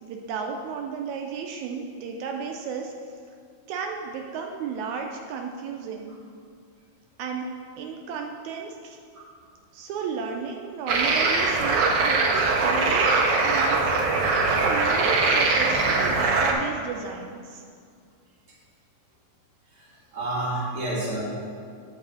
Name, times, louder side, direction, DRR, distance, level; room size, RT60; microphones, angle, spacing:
voice 1, 0.0-2.9 3.7-6.1 7.2-7.5 7.8-9.0 9.7-13.1 13.4-14.1 14.5-17.6, right 6 dB, 80° right, 2 dB, 2.0 m, -33 dB
sound 1, 10.9-16.5, right 3 dB, 65° right, 1.5 m, -22 dB
voice 2, 19.7-21.2, right 1 dB, 25° right, -7 dB, 2.3 m, -30 dB
9.3 x 4.9 x 6.8 m, 2.2 s
omnidirectional pair, 3.3 m